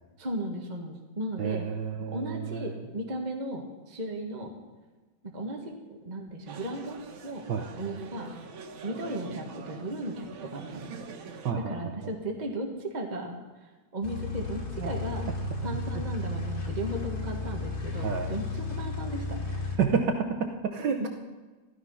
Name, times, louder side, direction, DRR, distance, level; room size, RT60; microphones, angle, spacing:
voice 1, 0.2-1.6 2.1-4.5 5.3-7.0 7.2-7.5 7.8-8.3 8.8-11.1 11.5-15.3 15.6-19.8 21.0-21.1, right 1 dB, 25° right, 1 dB, 1.5 m, -36 dB
voice 2, 1.4-2.6 7.5-7.6 11.4-11.7 14.8-14.9 18.0-18.3 19.8-21.1, right 6 dB, 70° right, 5 dB, 1.5 m, -29 dB
sound 1, 6.5-11.5, right 5 dB, 90° right, 1.9 m, -45 dB
sound 2, 14.0-19.8, left 3 dB, 75° left, 3.3 m, -34 dB
14.5 x 13.0 x 5.6 m, 1.3 s
omnidirectional pair, 2.1 m